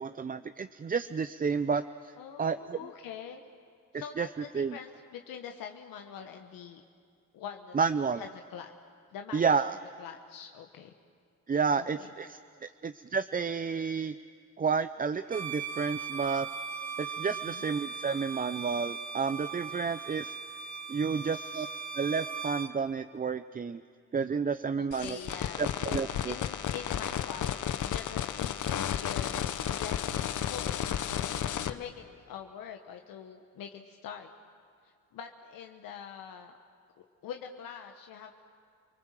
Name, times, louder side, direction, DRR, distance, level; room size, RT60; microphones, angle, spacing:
voice 1, 0.0-2.8 4.2-4.3 4.5-4.8 7.7-8.2 9.3-9.8 11.5-14.2 14.6-16.5 17.0-20.3 20.9-21.7 21.9-23.8 24.1-25.2 25.6-26.3, right 5 dB, 25° right, 12 dB, 0.5 m, -31 dB
voice 2, 2.2-3.5 3.9-6.8 7.3-7.8 8.2-8.7 9.1-9.7 10.0-10.9 11.7-12.1 17.3-17.6 24.7-26.0 26.3-30.0 30.5-30.8 31.7-34.3 34.8-36.5 37.0-38.3, left 8 dB, 85° left, 4 dB, 1.1 m, -44 dB
Bowed string instrument, 15.3-22.8, right 5 dB, 55° right, 1.3 m, -39 dB
sound 1, 24.9-31.7, left 9 dB, 60° left, 1.0 m, -33 dB
30.0 x 20.0 x 7.5 m, 2.2 s
cardioid pair, 70°, 33 cm